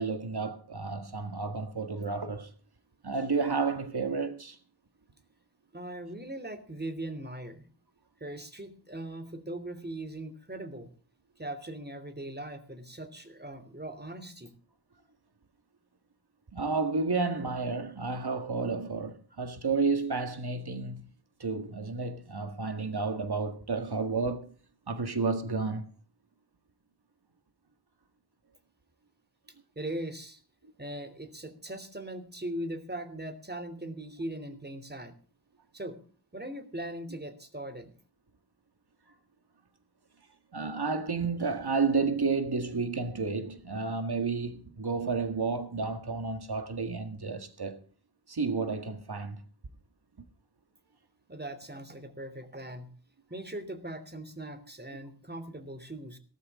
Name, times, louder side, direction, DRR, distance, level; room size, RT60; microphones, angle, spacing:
voice 1, 0.0-2.5 3.0-4.6 16.5-21.1 21.4-24.5 24.9-25.8 40.5-47.8 48.3-49.4, right 4 dB, 75° right, 1.8 m, -31 dB
voice 2, 5.7-7.6 8.2-10.9 11.4-14.5 29.7-30.4 30.8-35.1 35.7-36.0 36.3-37.9 51.3-52.9 53.3-56.2, right 1 dB, 25° right, 3.2 m, -40 dB
18.0 x 14.0 x 3.7 m
wide cardioid pair, 45°, 39 cm